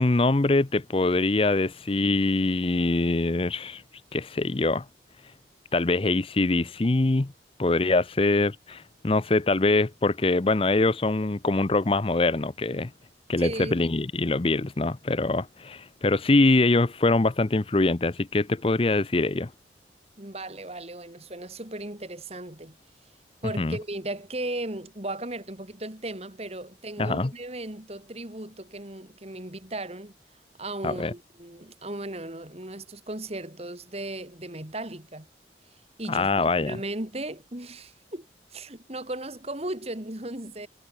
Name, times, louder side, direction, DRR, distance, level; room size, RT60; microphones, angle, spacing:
voice 1, 0.0-3.8 4.1-4.8 5.7-7.3 7.6-12.9 13.3-19.5 23.6-23.8 27.0-27.3 30.8-31.1 36.1-36.8, left 2 dB, 30° left, 0.6 m, -23 dB
voice 2, 13.4-13.8 20.2-22.8 23.4-30.1 30.6-35.3 36.0-40.7, right 1 dB, 35° right, 3.0 m, -36 dB
head